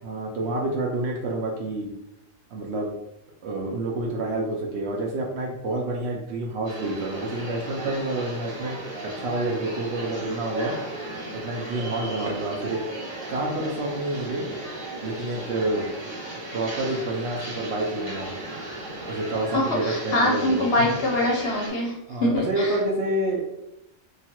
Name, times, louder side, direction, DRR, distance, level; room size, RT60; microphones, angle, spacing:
voice 1, 0.0-1.9 2.5-2.9 3.4-8.8 9.2-10.7 11.3-12.8 13.3-14.4 15.0-15.9 16.5-18.3 19.1-20.6 22.1-23.4, right 2 dB, 65° right, -1 dB, 0.7 m, -28 dB
sound 1, 6.6-21.7, right 1 dB, 85° right, 1.4 m, -35 dB
voice 2, 19.5-21.9 22.2-22.7, left 1 dB, 60° left, -2 dB, 0.7 m, -23 dB
3.0 x 2.3 x 2.8 m, 0.87 s
omnidirectional pair, 1.4 m